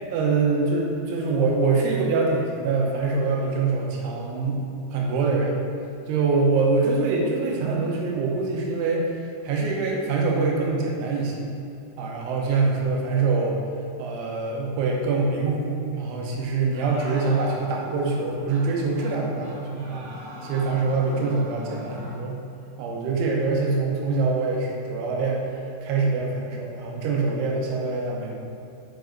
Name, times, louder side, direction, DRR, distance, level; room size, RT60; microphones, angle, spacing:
voice 1, 0.1-4.6 4.9-5.7 6.1-9.2 9.4-11.5 12.0-13.6 14.0-20.1 20.4-22.4 22.8-28.4, right 3 dB, 90° right, -1 dB, 3.3 m, -24 dB
sound 1, 16.7-18.2 18.5-18.7 18.9-19.1 19.4-22.2, equal, 60° right, 1.7 m, -40 dB
7.7 x 5.0 x 3.9 m, 2.8 s
omnidirectional pair, 5.3 m